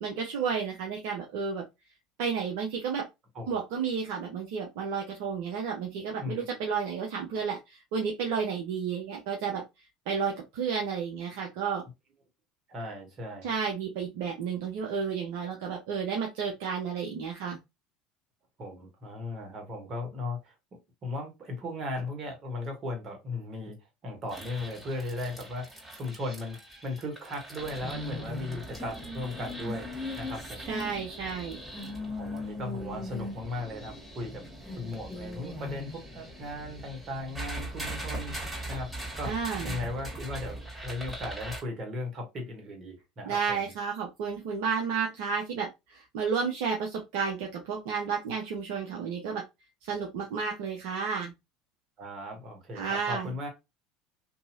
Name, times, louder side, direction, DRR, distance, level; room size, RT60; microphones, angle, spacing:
voice 1, 0.0-1.6 2.2-3.1 3.5-9.6 10.1-11.8 13.4-17.6 30.7-31.6 39.3-39.8 43.2-49.4 49.8-51.3 52.7-53.3, right 6 dB, 65° right, 0.6 m, -32 dB
voice 2, 12.7-13.5 18.6-20.5 21.0-23.8 24.0-29.9 30.2-30.8 32.1-34.5 34.7-38.4 38.7-43.7 52.0-53.5, left 2 dB, 40° right, 1.4 m, -37 dB
sound 1, 24.3-41.6, equal, 10° right, 1.8 m, -39 dB
2.8 x 2.6 x 2.6 m
hypercardioid pair, 75°, 0 cm